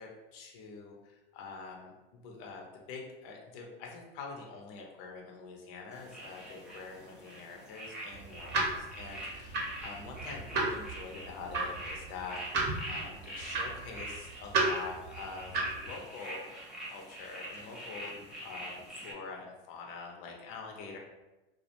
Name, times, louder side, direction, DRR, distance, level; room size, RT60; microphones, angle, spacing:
voice 1, 0.0-16.5 16.8-21.0, left 4 dB, 45° left, 0 dB, 0.6 m, -45 dB
sound 1, 5.9-19.1, right 1 dB, ahead, 0.5 m, -45 dB
sound 2, 8.1-15.9, right 3 dB, 35° right, 0.7 m, -34 dB
2.4 x 2.1 x 2.8 m, 1.0 s
hypercardioid pair, 105°, 31 cm